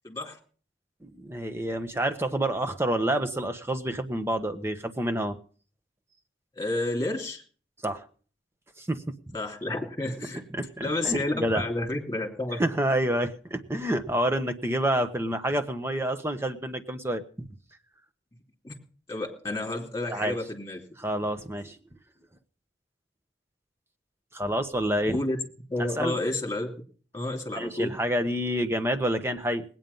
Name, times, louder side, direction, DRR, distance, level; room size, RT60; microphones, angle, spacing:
voice 1, 0.0-0.4 6.6-7.4 9.3-10.4 10.8-12.6 18.6-18.7 19.1-20.8 25.1-25.4 25.7-26.7 27.1-27.9, left 2 dB, 15° left, 2 dB, 2.9 m, -30 dB
voice 2, 1.0-5.4 7.8-8.0 8.8-9.3 10.5-11.6 12.6-17.5 20.1-20.4 21.0-21.8 24.3-25.2 26.0-26.2 27.5-29.6, right 1 dB, 15° right, 8 dB, 1.0 m, -28 dB
19.5 x 9.1 x 5.5 m, 0.42 s
head